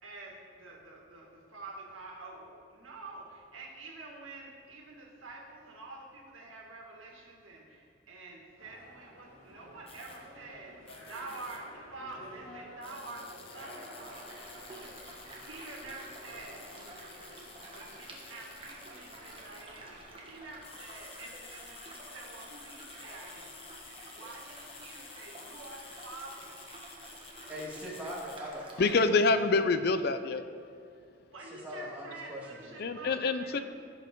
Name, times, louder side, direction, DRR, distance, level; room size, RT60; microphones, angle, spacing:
voice 1, 0.0-16.8 17.7-26.6 31.3-33.6, right 2 dB, 85° right, -1 dB, 1.9 m, -48 dB
sound 1, 8.6-20.8, equal, 80° left, 2.0 m, -52 dB
sound 2, 9.9-10.2 10.9-11.6 12.8-19.7 20.4-28.4, left 4 dB, 30° left, 0.8 m, -51 dB
sound 3, 14.0-29.0, right 2 dB, 25° right, 1.3 m, -51 dB
voice 2, 27.5-29.2 31.5-32.9, equal, 10° right, -6 dB, 1.9 m, -42 dB
voice 3, 28.8-30.4 32.8-33.6, left 3 dB, 50° left, 10 dB, 0.4 m, -26 dB
15.5 x 5.4 x 3.8 m, 2.3 s
head